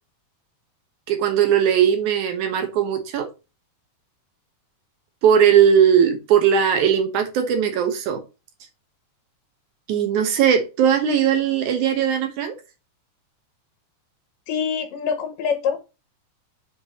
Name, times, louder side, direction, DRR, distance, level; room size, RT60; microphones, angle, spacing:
voice 1, 1.1-3.3 5.2-8.2 9.9-12.6, right 8 dB, 70° right, 2.4 m, -19 dB
voice 2, 14.5-15.8, left 6 dB, 85° left, 2.7 m, -25 dB
6.7 x 5.1 x 3.0 m
omnidirectional pair, 3.7 m